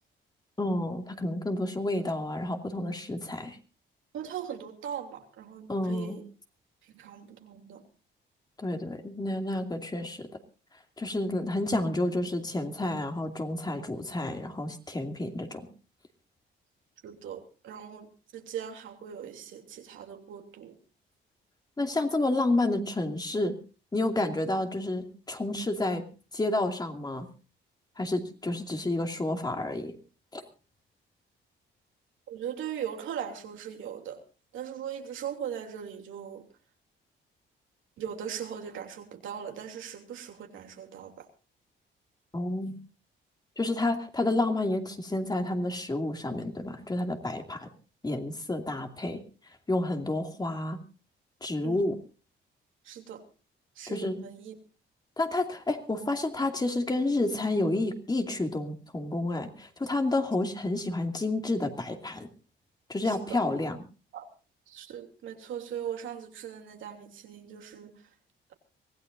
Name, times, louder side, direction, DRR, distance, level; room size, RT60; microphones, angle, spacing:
voice 1, 0.6-3.6 5.7-6.2 8.6-10.3 11.0-15.7 21.8-23.6 23.9-26.1 26.3-27.3 28.0-29.9 30.3-30.4 42.3-42.8 43.6-47.7 48.0-49.2 49.7-50.8 51.4-52.0 53.9-54.3 55.2-62.3 62.9-63.8, left 2 dB, 20° left, 4 dB, 2.5 m, -30 dB
voice 2, 4.1-6.2 6.9-7.8 17.0-18.1 18.3-20.7 32.3-34.2 34.5-36.4 38.0-41.1 43.8-43.9 51.6-51.8 52.9-53.2 53.8-54.5 63.1-63.2 64.1-64.2 64.7-67.9, right 9 dB, 80° right, 3 dB, 3.0 m, -39 dB
24.5 x 16.5 x 2.6 m, 0.34 s
cardioid pair, 90°, 20 cm